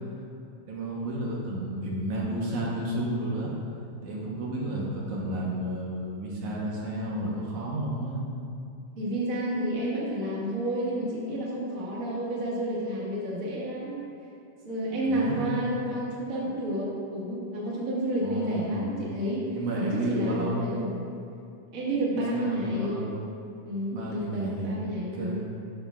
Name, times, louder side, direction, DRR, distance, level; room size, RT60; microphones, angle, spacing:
voice 1, 0.6-3.5 4.0-8.2 15.1-15.5 18.2-18.9 19.5-20.7 22.3-23.1 23.9-24.8 25.1-25.5, right 1 dB, 70° right, -4 dB, 2.3 m, -31 dB
voice 2, 9.0-14.0 14.6-21.0 21.7-23.0 23.6-25.4, right 1 dB, 35° right, -6 dB, 1.4 m, -30 dB
12.5 x 6.8 x 2.4 m, 2.4 s
omnidirectional pair, 3.8 m